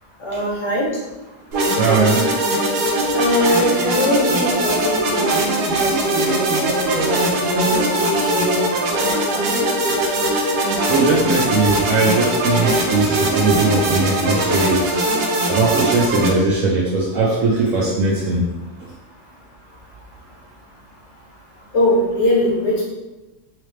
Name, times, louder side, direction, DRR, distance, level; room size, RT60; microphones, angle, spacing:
voice 1, 0.2-0.9 3.1-9.4 21.7-22.8, left 1 dB, 50° left, -4 dB, 1.1 m, -22 dB
sound 1, 1.5-16.3, right 1 dB, 90° right, 1.2 m, -20 dB
voice 2, 1.8-2.3 10.9-15.0 15.5-18.5, right 3 dB, 70° right, -3 dB, 0.8 m, -19 dB
3.3 x 2.8 x 3.1 m, 1.1 s
omnidirectional pair, 1.7 m